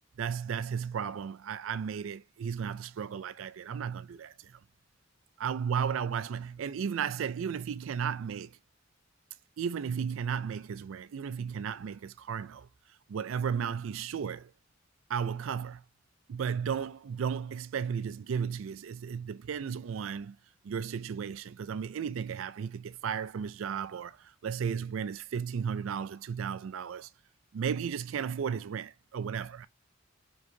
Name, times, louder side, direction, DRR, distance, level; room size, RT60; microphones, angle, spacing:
voice 1, 0.2-4.6 5.4-8.6 9.6-12.7 13.1-14.5 15.1-15.8 16.3-20.4 20.6-27.1 27.5-29.7, right 7 dB, 90° right, 0.4 m, -34 dB
4.5 x 4.5 x 2.6 m
head